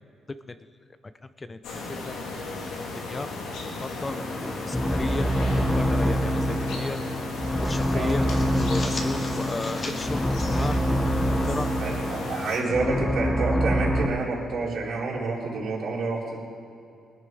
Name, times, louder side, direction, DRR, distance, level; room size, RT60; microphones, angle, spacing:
voice 1, 1.2-1.6 2.1-2.2 3.1-3.3 3.8-6.5 6.8-7.0 7.6-8.3 8.5-10.8 11.0-11.7, left 3 dB, 25° left, 11 dB, 0.6 m, -34 dB
sound 1, 1.6-12.6, left 2 dB, 90° left, 2.5 m, -35 dB
sound 2, 4.1-14.1, equal, 10° left, 1.1 m, -26 dB
sound 3, 5.6-6.3 6.6-6.8 7.2-11.7, left 2 dB, 40° left, 2.6 m, -41 dB
voice 2, 11.8-16.4, right 3 dB, 65° right, -4 dB, 4.2 m, -28 dB
20.0 x 11.5 x 4.7 m, 2.6 s
cardioid pair, 90°, 0 cm